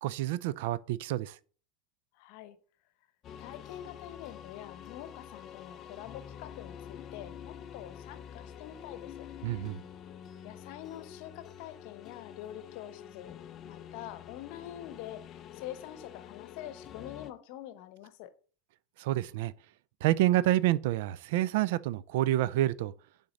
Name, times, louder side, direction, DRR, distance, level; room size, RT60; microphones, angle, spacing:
voice 1, 0.0-1.4 9.4-9.8 19.0-19.5 20.0-22.9, right 14 dB, 75° right, 0.4 m, -28 dB
voice 2, 2.1-2.6 3.4-9.2 9.5-9.8 10.4-13.4 13.6-18.3, left 12 dB, 65° left, 0.8 m, -46 dB
sound 1, 3.2-17.3, left 9 dB, 40° left, 0.4 m, -47 dB
7.0 x 3.9 x 4.0 m
supercardioid pair, 115°, 0 cm